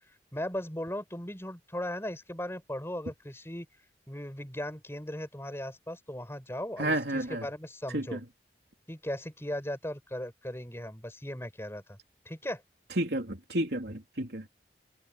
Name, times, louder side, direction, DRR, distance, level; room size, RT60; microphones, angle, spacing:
voice 1, 0.3-3.7 4.1-8.2 8.9-12.0 12.2-12.6, left 1 dB, 15° left, 6.2 m, -37 dB
voice 2, 6.8-7.5 7.9-8.2 13.0-14.5, right 1 dB, 70° right, 3.2 m, -31 dB
head